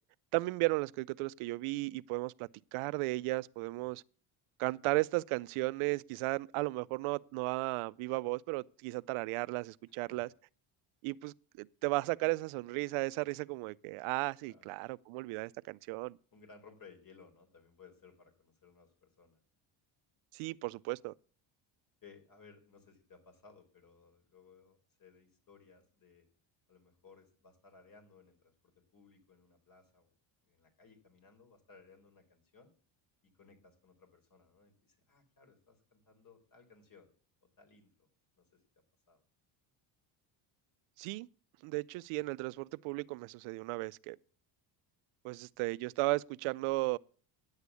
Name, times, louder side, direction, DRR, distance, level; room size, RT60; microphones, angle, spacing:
voice 1, 0.3-4.0 4.6-10.3 11.0-16.2 20.3-21.1 41.0-41.3 41.6-44.2 45.2-47.0, right 23 dB, 85° right, 0.6 m, -35 dB
voice 2, 16.3-19.4 22.0-26.3 26.7-30.1 30.4-32.7 33.2-37.1 37.4-38.1 38.4-38.6 39.1-39.2, left 5 dB, 40° left, 3.9 m, -60 dB
10.5 x 8.1 x 8.2 m
cardioid pair, 115°, 50 cm